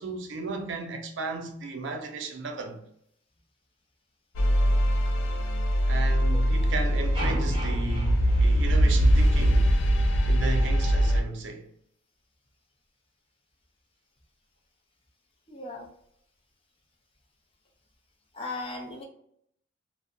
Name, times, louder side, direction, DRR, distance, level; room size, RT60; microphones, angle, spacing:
voice 1, 0.0-2.8 5.9-9.8 10.3-11.7, right 3 dB, 70° right, 0.5 m, -35 dB
sound 1, 4.3-11.2, equal, 80° left, 0.4 m, -22 dB
sound 2, 7.1-9.4, right 1 dB, 25° right, 0.6 m, -37 dB
voice 2, 15.5-15.9 18.3-19.0, left 2 dB, 30° left, 0.5 m, -37 dB
2.6 x 2.1 x 2.4 m
head